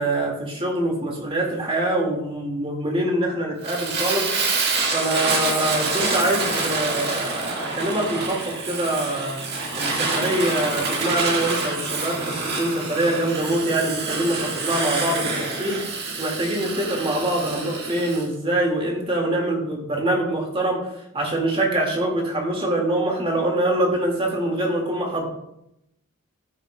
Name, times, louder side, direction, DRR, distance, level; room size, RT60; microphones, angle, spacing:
voice 1, 0.0-4.3 4.9-9.4 9.8-15.8 16.2-20.8 21.1-25.3, right 1 dB, 25° right, 0 dB, 1.9 m, -24 dB
Fire, 3.6-18.3, right 3 dB, 50° right, 1.7 m, -27 dB
14.0 x 6.6 x 2.2 m, 0.81 s
head